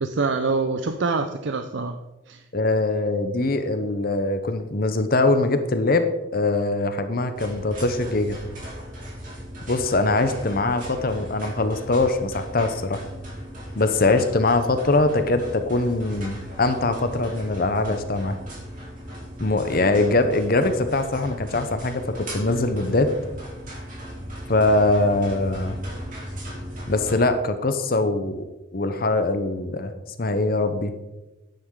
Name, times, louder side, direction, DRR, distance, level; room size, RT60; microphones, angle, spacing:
voice 1, 0.0-2.0 2.3-2.4, right 3 dB, 65° right, 8 dB, 0.6 m, -25 dB
voice 2, 2.5-8.4 9.7-13.0 13.8-18.4 19.4-23.1 24.5-25.8 26.9-28.4 28.7-29.9 30.2-30.9, left 2 dB, 45° left, 9 dB, 0.8 m, -22 dB
sound 1, 7.3-27.1, equal, 40° right, 3.7 m, -37 dB
11.0 x 9.2 x 3.8 m, 1.0 s
head